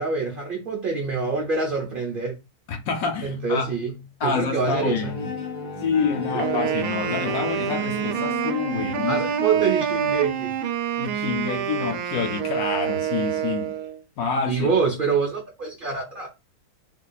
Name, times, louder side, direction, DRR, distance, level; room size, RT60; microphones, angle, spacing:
voice 1, 0.0-2.3 3.2-5.2 6.5-6.6 9.1-10.5 14.5-16.3, right 5 dB, 50° right, 0.6 m, -26 dB
voice 2, 2.7-3.7 4.2-5.3 5.8-9.5 11.0-13.7 14.2-14.7, left 6 dB, 70° left, 1.0 m, -27 dB
Bowed string instrument, 4.6-9.5, left 3 dB, 50° left, 0.6 m, -34 dB
Wind instrument woodwind instrument, 6.4-14.0, right 9 dB, 80° right, 1.1 m, -27 dB
2.8 x 2.4 x 3.8 m
omnidirectional pair, 1.7 m